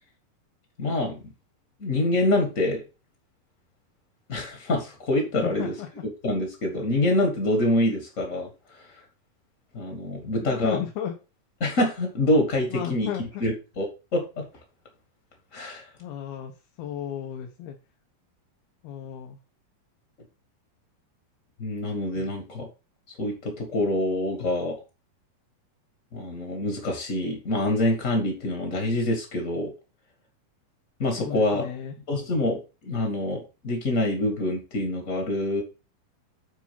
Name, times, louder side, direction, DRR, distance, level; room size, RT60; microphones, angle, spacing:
voice 1, 0.8-1.3 1.8-2.8 4.3-5.7 6.2-8.5 9.7-10.8 11.6-13.9 14.1-14.4 15.5-15.8 21.6-22.7 23.2-24.8 26.1-29.7 31.0-31.6 32.1-35.6, left 1 dB, 35° left, 2 dB, 1.3 m, -26 dB
voice 2, 5.4-5.9 10.4-11.1 12.7-13.4 16.0-16.5 16.8-17.8 18.8-19.4 22.1-22.3 31.2-32.0, left 10 dB, 85° left, 2 dB, 3.1 m, -34 dB
9.1 x 4.2 x 5.8 m, 0.30 s
omnidirectional pair, 4.3 m